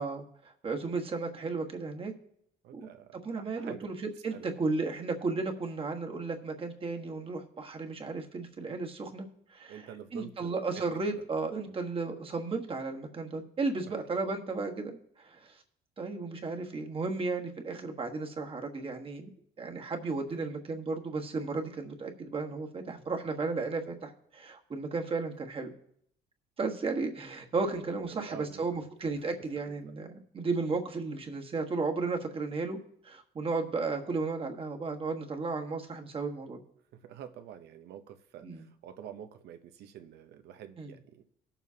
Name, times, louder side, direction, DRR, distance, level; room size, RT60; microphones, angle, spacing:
voice 1, 0.0-2.1 2.7-15.6 16.0-19.3 19.6-25.7 26.6-32.8 33.0-36.6 38.4-38.7 40.8-40.9, right 3 dB, 35° right, 3 dB, 1.4 m, -34 dB
voice 2, 2.6-3.9 4.3-4.5 9.7-10.8 11.6-11.7 13.9-14.0 28.1-28.6 36.9-41.2, right 9 dB, 75° right, 8 dB, 0.8 m, -47 dB
18.0 x 7.2 x 2.8 m, 0.71 s
cardioid pair, 110°, 17 cm